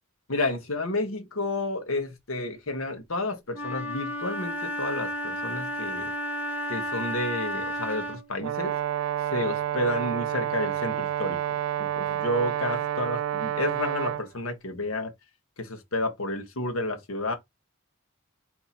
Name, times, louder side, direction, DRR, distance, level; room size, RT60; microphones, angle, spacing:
voice 1, 0.3-6.1 6.7-8.7 9.3-11.4 11.8-15.1 15.6-17.3, left 1 dB, 70° left, 1.2 m, -31 dB
Wind instrument woodwind instrument, 3.5-8.4, equal, 10° right, 1.3 m, -32 dB
Brass instrument, 8.4-14.2, right 11 dB, 70° right, 0.3 m, -29 dB
4.4 x 2.8 x 4.0 m
head